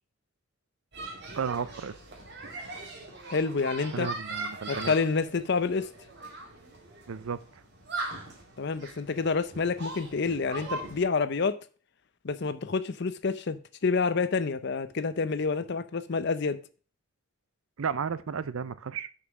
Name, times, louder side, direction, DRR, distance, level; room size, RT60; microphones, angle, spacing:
sound 1, 0.9-11.0, right 2 dB, 55° right, 2.4 m, -40 dB
voice 1, 1.3-1.9 3.9-4.9 7.1-7.4 17.8-19.1, right 6 dB, 90° right, 0.5 m, -33 dB
voice 2, 3.3-4.1 4.7-5.9 8.6-11.6 12.2-16.6, left 4 dB, 55° left, 0.6 m, -28 dB
6.5 x 5.4 x 5.9 m
head